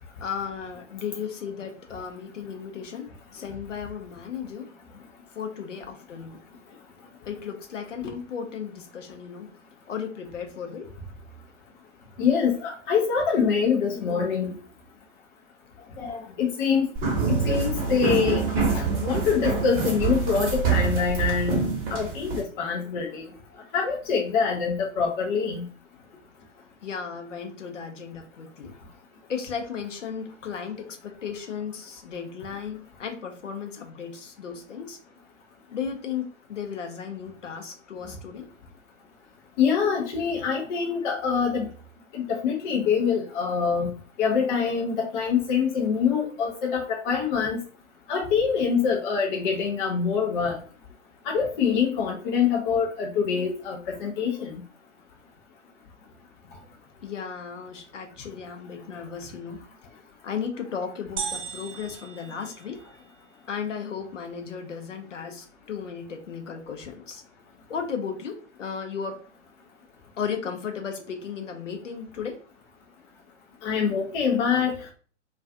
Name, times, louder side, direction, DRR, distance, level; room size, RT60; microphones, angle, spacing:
voice 1, 0.2-4.7 5.3-6.4 7.3-9.5 9.9-10.9 26.8-28.7 29.3-35.0 35.7-38.5 57.0-59.6 60.2-62.8 63.5-67.2 67.7-69.3 70.2-72.4, left 6 dB, 80° left, 4 dB, 0.6 m, -35 dB
voice 2, 12.2-14.5 16.0-16.9 17.3-18.4 18.7-21.6 21.9-23.3 23.7-25.7 39.6-41.7 42.1-43.9 44.2-47.6 48.1-50.6 51.3-54.6 73.6-74.7, left 6 dB, 40° left, 0 dB, 0.5 m, -25 dB
sound 1, 16.9-22.4, right 5 dB, 20° right, 0.8 m, -26 dB
sound 2, 61.2-63.1, right 5 dB, 75° right, 0.6 m, -36 dB
2.4 x 2.3 x 2.4 m, 0.41 s
figure-of-eight pair, 110°, 36 cm